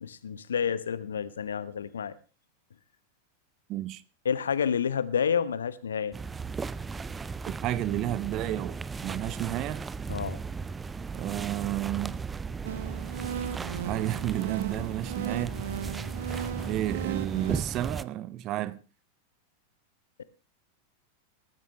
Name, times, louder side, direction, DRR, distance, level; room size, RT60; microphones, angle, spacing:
voice 1, 0.0-2.1 4.2-6.1 10.1-10.4, left 7 dB, 70° left, 1.1 m, -29 dB
voice 2, 3.7-4.0 7.5-9.9 11.1-12.2 13.8-15.6 16.7-18.8, right 14 dB, 35° right, 1.0 m, -31 dB
sound 1, 6.1-18.0, right 5 dB, 15° right, 0.6 m, -36 dB
sound 2, 12.6-17.6, right 9 dB, 65° right, 0.7 m, -36 dB
19.0 x 14.0 x 3.3 m
figure-of-eight pair, 90°, 0 cm